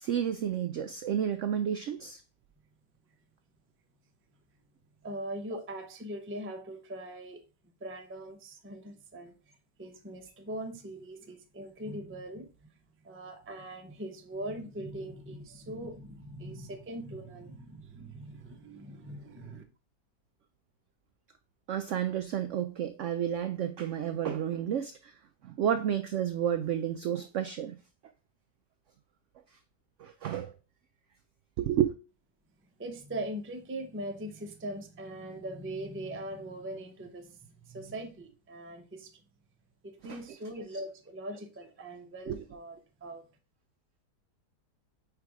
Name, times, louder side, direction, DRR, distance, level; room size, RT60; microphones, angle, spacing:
voice 1, 0.0-2.2 21.7-25.1 25.4-27.8 30.0-30.5 31.6-31.9 40.1-40.2 42.3-42.4, right 9 dB, 80° right, 0.6 m, -31 dB
voice 2, 5.0-7.4 7.8-9.3 9.8-12.7 13.0-19.6 32.8-39.2 39.8-43.2, right 1 dB, 20° right, 0.3 m, -41 dB
4.7 x 4.5 x 4.8 m
omnidirectional pair, 1.8 m